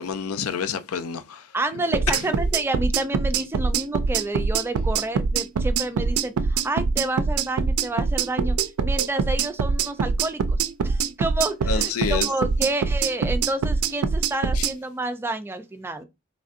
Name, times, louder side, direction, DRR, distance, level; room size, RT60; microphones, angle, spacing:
voice 1, 0.0-1.5 2.1-2.2 11.6-12.3 14.5-14.7, left 6 dB, 80° left, 0.5 m, -28 dB
voice 2, 1.5-8.6 8.8-10.6 10.8-16.0, right 2 dB, 10° right, 0.3 m, -29 dB
sound 1, 1.9-14.7, right 5 dB, 85° right, 0.4 m, -23 dB
3.8 x 3.3 x 2.5 m
head